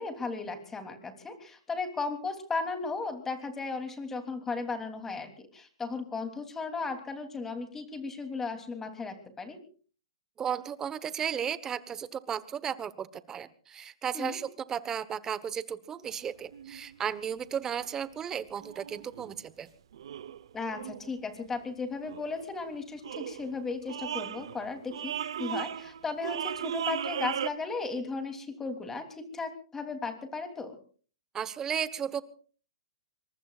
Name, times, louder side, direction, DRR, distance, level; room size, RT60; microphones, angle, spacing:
voice 1, 0.0-9.6 14.1-14.4 20.5-30.7, left 4 dB, 15° left, 6 dB, 3.1 m, -36 dB
voice 2, 10.4-19.7 31.3-32.2, right 8 dB, 20° right, 15 dB, 1.1 m, -34 dB
sound 1, 16.1-16.2 16.5-17.0 17.8-18.0 18.6-19.4 19.9-21.2 22.0-22.4 23.0-23.6 23.9-27.5, right 9 dB, 70° right, 0.9 m, -37 dB
24.5 x 23.0 x 2.5 m, 0.41 s
hypercardioid pair, 135°, 3 cm